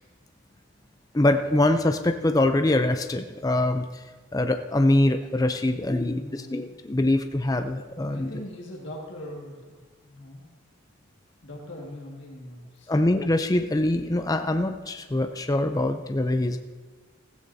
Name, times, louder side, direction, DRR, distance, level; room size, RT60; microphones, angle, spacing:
voice 1, 1.1-4.0 4.3-8.3 12.9-16.7, left 1 dB, 15° left, 7 dB, 0.5 m, -24 dB
voice 2, 5.6-6.7 8.1-10.5 11.4-13.0, left 1 dB, 60° left, -2 dB, 1.8 m, -42 dB
15.5 x 15.0 x 2.7 m, 1.4 s
head